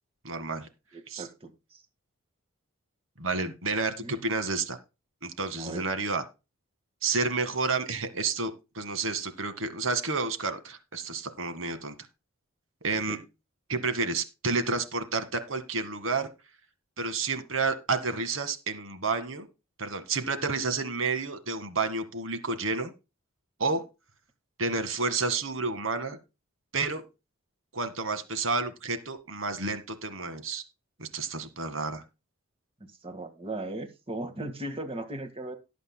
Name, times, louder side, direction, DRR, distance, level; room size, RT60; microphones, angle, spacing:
voice 1, 0.2-0.7 1.1-1.2 3.2-4.8 5.2-6.2 7.0-11.9 12.8-13.2 13.7-16.3 17.0-19.5 19.8-22.9 23.6-23.8 24.6-26.2 26.7-27.0 27.7-30.6 31.0-32.0, right 4 dB, 75° right, 2.0 m, -30 dB
voice 2, 0.9-1.8 4.0-4.2 5.6-5.8 13.1-13.2 32.8-35.6, right 2 dB, 25° right, 1.8 m, -38 dB
18.0 x 8.2 x 2.3 m
head